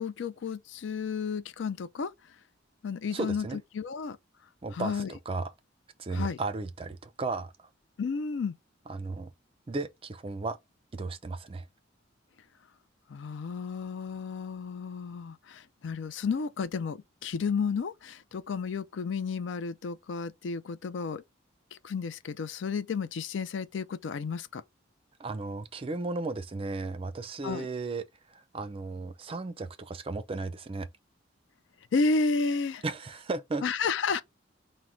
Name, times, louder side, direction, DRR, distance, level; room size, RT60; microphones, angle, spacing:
voice 1, 0.0-2.1 2.8-4.2 4.7-5.1 6.1-6.4 8.0-8.5 13.1-21.2 21.7-24.6 27.4-27.7 31.9-32.8 33.6-34.2, left 4 dB, 65° left, 0.4 m, -32 dB
voice 2, 3.1-3.6 4.6-5.5 6.0-7.7 8.9-9.3 9.7-10.6 10.9-11.6 25.2-28.0 28.3-30.9 32.8-33.6, right 3 dB, 30° right, 0.4 m, -35 dB
4.5 x 2.1 x 3.7 m
head